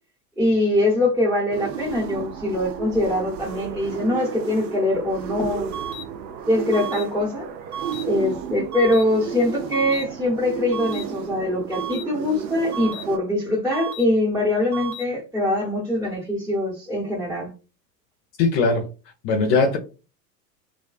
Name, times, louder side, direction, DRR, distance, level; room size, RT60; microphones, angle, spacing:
voice 1, 0.4-5.7 6.5-7.5 8.0-17.5, left 1 dB, 5° right, 0.7 m, -23 dB
sound 1, 1.5-13.2, right 7 dB, 85° right, 0.5 m, -33 dB
sound 2, 5.7-6.0 6.7-7.0 7.7-8.0 8.7-9.0 9.7-10.0 10.7-11.0 11.7-12.0 12.7-13.0 13.7-14.0 14.7-15.0, right 5 dB, 25° right, 0.4 m, -32 dB
voice 2, 18.4-18.9 19.2-19.8, left 4 dB, 50° left, 0.5 m, -19 dB
2.4 x 2.2 x 2.3 m
hypercardioid pair, 100°, 49 cm